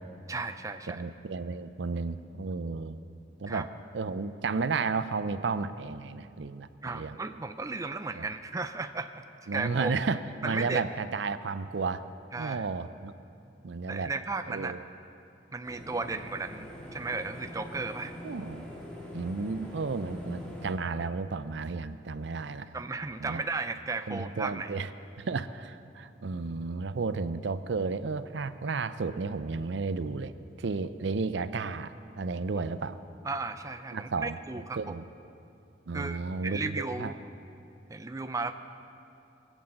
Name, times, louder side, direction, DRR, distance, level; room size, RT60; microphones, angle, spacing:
voice 1, 0.3-1.0 3.5-3.6 6.8-9.1 9.5-9.9 10.4-10.8 12.3-12.7 13.9-14.8 15.5-18.1 22.7-24.7 32.5-32.6 33.2-34.9 35.9-37.2 37.9-38.5, right 3 dB, 15° right, 8 dB, 0.4 m, -35 dB
voice 2, 0.9-3.0 3.4-3.7 3.9-7.2 8.2-8.3 9.5-12.0 12.4-13.1 13.6-14.1 14.5-14.8 18.2-18.6 19.1-22.7 23.2-23.4 24.1-24.9 25.2-30.3 30.6-33.0 33.9-35.0 35.9-37.1, right 4 dB, 70° right, 13 dB, 0.5 m, -33 dB
sound 1, 15.6-20.7, left 1 dB, 5° left, 2.0 m, -43 dB
20.0 x 8.2 x 7.6 m, 2.6 s
head